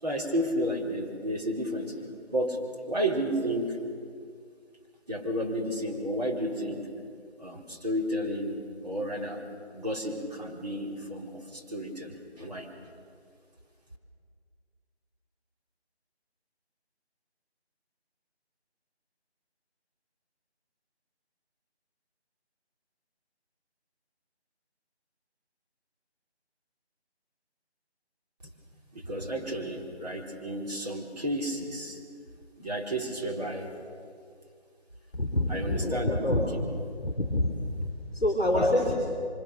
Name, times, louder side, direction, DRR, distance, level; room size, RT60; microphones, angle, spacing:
voice 1, 0.0-2.0 2.3-2.6 2.9-3.8 5.1-6.9 7.4-8.6 8.8-9.4 9.7-12.7 28.9-32.0 32.6-33.7 35.5-36.5 38.5-38.9, equal, 40° right, -2 dB, 4.2 m, -32 dB
voice 2, 35.1-36.4 37.0-37.5 37.8-38.9, left 1 dB, ahead, -17 dB, 2.2 m, -26 dB
28.5 x 25.5 x 6.7 m, 2.2 s
figure-of-eight pair, 165°, 33 cm